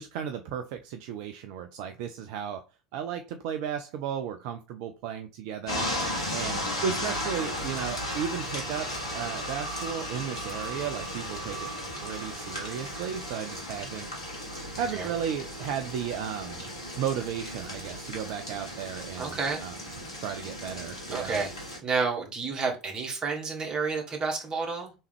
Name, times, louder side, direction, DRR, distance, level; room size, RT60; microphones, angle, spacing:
voice 1, 0.0-2.6 2.9-5.9 6.3-14.1 14.8-16.6 17.0-19.8 20.2-21.4, right 8 dB, 50° right, 0.4 m, -34 dB
sound 1, 5.7-21.8, equal, 75° left, 1.3 m, -35 dB
voice 2, 19.2-19.6 21.1-21.5 21.8-24.9, right 4 dB, 25° right, 1.4 m, -30 dB
3.4 x 3.1 x 3.2 m
figure-of-eight pair, 70°, 3 cm